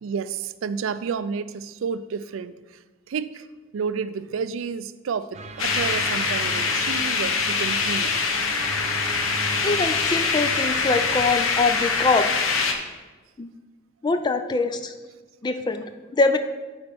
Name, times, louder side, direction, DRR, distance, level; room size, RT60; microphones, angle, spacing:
voice 1, 0.0-2.5 3.1-3.4 3.7-8.2, right 6 dB, 75° right, 14 dB, 0.4 m, -30 dB
sound 1, 5.3-11.2, right 3 dB, 35° right, 0.6 m, -38 dB
sound 2, 5.6-12.7, left 4 dB, 90° left, 0.9 m, -24 dB
voice 2, 9.6-12.3 13.4-13.5 14.0-14.9 15.4-15.8 16.1-16.4, left 3 dB, 20° left, 9 dB, 0.3 m, -23 dB
8.6 x 4.3 x 5.9 m, 1.3 s
head